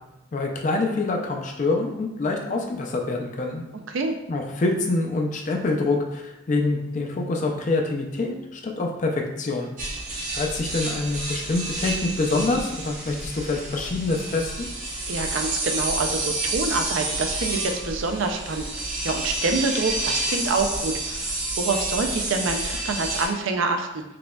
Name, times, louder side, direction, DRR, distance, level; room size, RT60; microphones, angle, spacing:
voice 1, 0.3-3.6 4.3-9.7 10.3-14.7, left 3 dB, 35° left, 2 dB, 0.3 m, -26 dB
voice 2, 3.7-4.2 15.1-24.0, right 3 dB, 60° right, 4 dB, 0.4 m, -26 dB
sound 1, 9.8-23.3, right 2 dB, 35° right, 0.7 m, -29 dB
4.9 x 2.2 x 2.2 m, 0.97 s
head